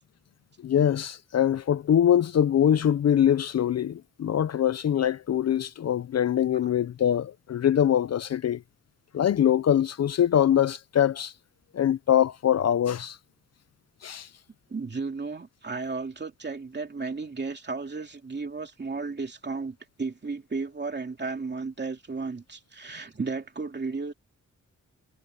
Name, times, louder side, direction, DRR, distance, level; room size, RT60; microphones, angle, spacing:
voice 1, 0.6-8.6 9.1-11.3 11.7-13.2 14.0-14.3, left 10 dB, 55° left, 0.4 m, -23 dB
voice 2, 14.7-24.1, right 4 dB, 35° right, 2.8 m, -34 dB
wide cardioid pair, 155°, 30 cm